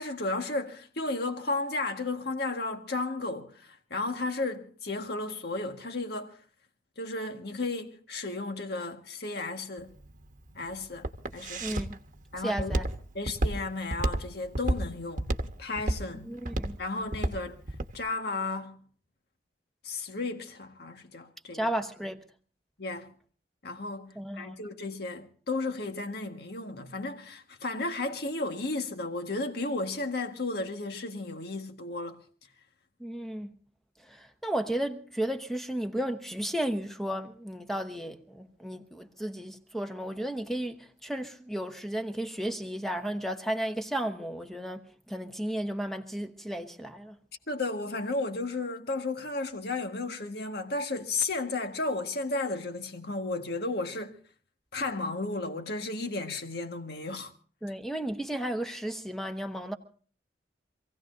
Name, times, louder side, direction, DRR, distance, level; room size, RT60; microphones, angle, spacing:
voice 1, 0.0-6.4 7.0-9.9 10.5-11.8 12.3-12.8 13.1-15.3 15.6-16.3 16.8-17.6 17.9-18.8 19.8-21.7 22.8-23.1 23.6-32.2 47.5-54.2 54.7-57.3, left 2 dB, 60° left, 1.6 m, -34 dB
Walk footsteps, 9.8-18.0, right 1 dB, 45° right, 1.2 m, -31 dB
voice 2, 11.6-12.0 12.4-12.8 16.2-16.8 21.5-22.2 24.1-24.6 33.0-33.5 34.0-47.1 57.6-59.7, right 1 dB, ahead, 1.0 m, -34 dB
26.5 x 16.5 x 2.6 m
head